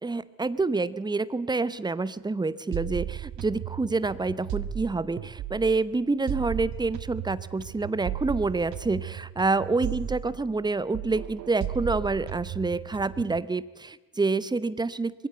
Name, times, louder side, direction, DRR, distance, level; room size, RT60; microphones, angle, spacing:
voice 1, 0.0-15.3, right 3 dB, 10° right, 17 dB, 0.8 m, -27 dB
sound 1, 2.7-5.8 6.3-10.7 10.9-13.4, right 11 dB, 55° right, 1.0 m, -35 dB
21.5 x 15.5 x 8.0 m, 1.3 s
figure-of-eight pair, 45°, 35 cm